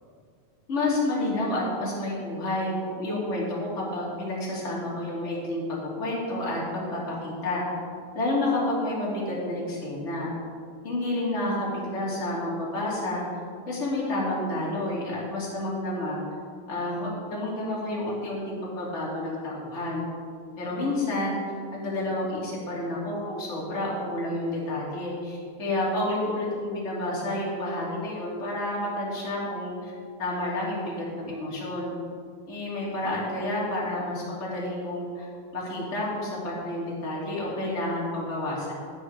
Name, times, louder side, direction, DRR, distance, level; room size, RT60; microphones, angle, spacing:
voice 1, 0.7-7.6 8.1-10.3 10.8-13.2 13.7-16.2 16.7-20.0 20.6-21.4 21.7-29.9 30.2-31.9 32.5-35.3 35.5-38.7, left 1 dB, 20° left, -6 dB, 2.6 m, -30 dB
11.5 x 9.7 x 4.7 m, 2.2 s
omnidirectional pair, 4.1 m